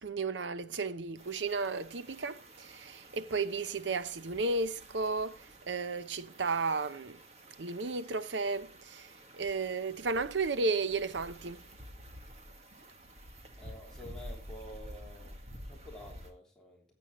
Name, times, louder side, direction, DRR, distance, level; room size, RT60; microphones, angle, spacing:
voice 1, 0.0-7.2 7.6-9.1 9.4-11.6, right 3 dB, 90° right, 0.8 m, -33 dB
sound 1, 1.2-16.3, equal, 35° right, 1.7 m, -51 dB
voice 2, 13.6-15.4 15.7-16.8, equal, 5° left, 3.5 m, -49 dB
16.0 x 8.2 x 3.0 m
head